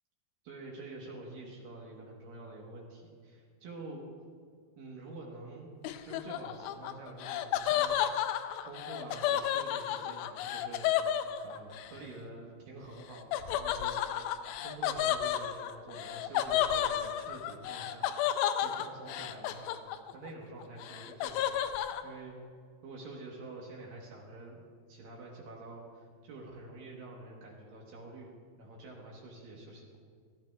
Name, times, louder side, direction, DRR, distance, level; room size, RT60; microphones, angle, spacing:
voice 1, 0.4-4.0 4.8-5.7 6.0-8.0 8.6-10.9 11.4-14.0 14.6-18.1 18.6-19.7 20.1-21.6 22.0-22.4 22.8-24.6 24.9-28.3 28.6-30.0, right 2 dB, 65° right, -1 dB, 2.6 m, -47 dB
Laughter, 5.8-11.9 13.3-20.3 20.6-22.0, left 11 dB, 90° left, 2.7 m, -32 dB
16.5 x 13.0 x 2.3 m, 2.1 s
omnidirectional pair, 4.8 m